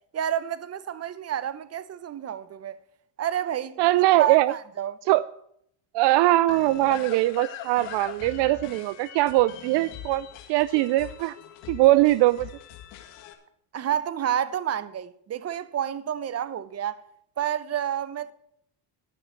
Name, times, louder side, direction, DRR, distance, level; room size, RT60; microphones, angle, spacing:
voice 1, 0.1-2.8 3.2-3.8 4.2-5.0 13.7-17.0 17.4-18.3, right 10 dB, 35° right, 0.8 m, -29 dB
voice 2, 3.8-4.5 5.1-5.2 5.9-11.3 11.7-12.5, right 17 dB, 65° right, 0.5 m, -21 dB
sound 1, 6.5-13.3, left 10 dB, 75° left, 2.1 m, -42 dB
12.0 x 6.4 x 8.0 m
supercardioid pair, 95°, 46 cm